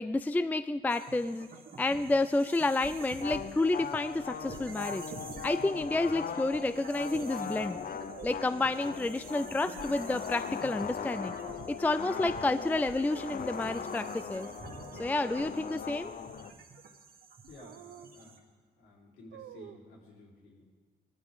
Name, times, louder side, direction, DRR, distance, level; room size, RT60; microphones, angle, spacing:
voice 1, 0.0-1.5 1.8-5.0 5.4-7.8 8.2-11.3 11.7-14.5 15.0-16.1, left 2 dB, 10° left, 13 dB, 0.4 m, -30 dB
sound 1, 0.9-18.4, right 4 dB, 50° right, 2.1 m, -49 dB
sound 2, 3.2-16.5, left 7 dB, 45° left, 0.7 m, -40 dB
sound 3, 8.1-8.3 11.1-11.6 13.1-13.7 14.0-15.5 15.9-16.0 17.6-18.1 19.3-19.8, right 9 dB, 70° right, 0.9 m, -50 dB
voice 2, 17.5-18.4 18.8-20.7, left 2 dB, 85° left, -3 dB, 4.0 m, -54 dB
19.0 x 14.5 x 3.7 m, 1.5 s
cardioid pair, 90°, 20 cm